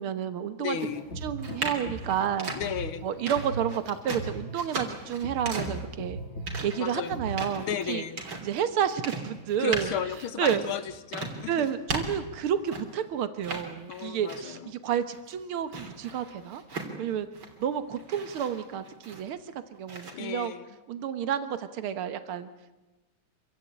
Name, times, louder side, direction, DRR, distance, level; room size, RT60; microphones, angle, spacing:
voice 1, 0.0-0.8 1.2-2.5 3.0-6.2 6.6-8.0 8.4-9.9 10.4-10.6 11.5-16.6 17.0-17.3 17.6-19.4 19.7-20.5 20.9-22.5, right 9 dB, 90° right, 11 dB, 2.0 m, -30 dB
voice 2, 0.6-1.0 2.5-3.0 6.8-7.1 7.6-8.2 9.6-10.8 11.1-11.7 13.9-14.7 20.1-20.6, left 8 dB, 80° left, 12 dB, 2.1 m, -34 dB
sound 1, 0.7-13.0 13.4-14.7 15.0-17.6 18.0-19.5 19.9-20.1, right 3 dB, 70° right, 4.1 m, -38 dB
sound 2, 0.9-7.9, right 1 dB, 30° left, 2.8 m, -39 dB
26.5 x 16.0 x 9.9 m, 1.1 s
omnidirectional pair, 2.3 m